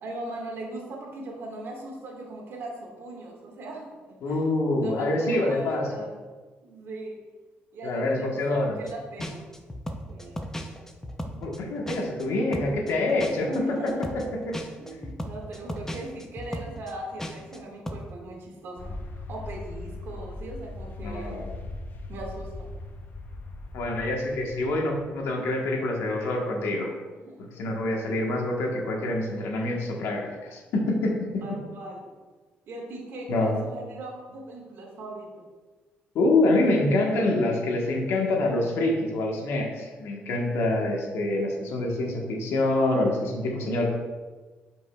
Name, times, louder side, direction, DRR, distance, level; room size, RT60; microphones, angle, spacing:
voice 1, 0.0-6.1 6.6-7.2 7.7-9.5 10.1-10.4 13.5-14.3 14.8-21.4 22.1-22.7 27.2-27.5 31.4-32.1 32.7-35.3, right 1 dB, 65° right, -1 dB, 1.8 m, -39 dB
voice 2, 4.2-6.0 7.8-8.8 11.3-14.5 21.0-21.5 23.7-26.9 27.4-31.2 33.3-33.5 36.1-43.9, left 2 dB, 75° left, 0 dB, 1.3 m, -26 dB
sound 1, 8.9-9.0 9.2-12.3 12.5-17.6 17.9-18.1, equal, 10° left, 0.7 m, -36 dB
sound 2, 18.8-25.2, left 2 dB, 50° left, 0.8 m, -39 dB
7.9 x 5.3 x 2.4 m, 1.3 s
cardioid pair, 80°, 4 cm